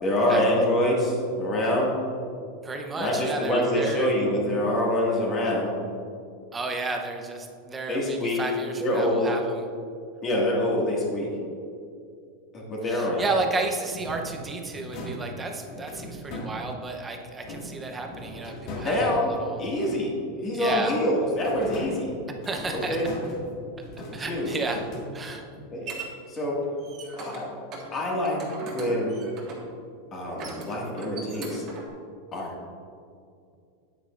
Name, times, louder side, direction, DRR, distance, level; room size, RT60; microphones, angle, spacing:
voice 1, 0.0-2.0 3.0-5.7 7.9-8.4 8.8-9.3 10.2-11.3 12.5-13.3 18.8-19.3 19.6-22.1 22.9-23.1 24.2-24.5 25.7-25.9 26.3-26.6 27.1-27.5 27.9-29.2 30.1-31.7 32.3-32.5, left 1 dB, 25° left, -3 dB, 1.9 m, -25 dB
voice 2, 2.6-4.1 6.5-9.7 12.8-19.6 20.5-20.9 22.3-23.0 24.1-24.8 25.1-25.5, right 3 dB, 15° right, 3 dB, 0.7 m, -32 dB
sound 1, 13.9-17.0 17.4-20.2 20.6-25.5, equal, 45° left, 1.9 m, -39 dB
sound 2, 25.3-26.1 26.6-27.4 27.7-27.9 28.2-29.7 30.3-31.9, right 3 dB, 35° right, 1.6 m, -39 dB
9.0 x 8.8 x 2.5 m, 2.4 s
supercardioid pair, 155°, 0 cm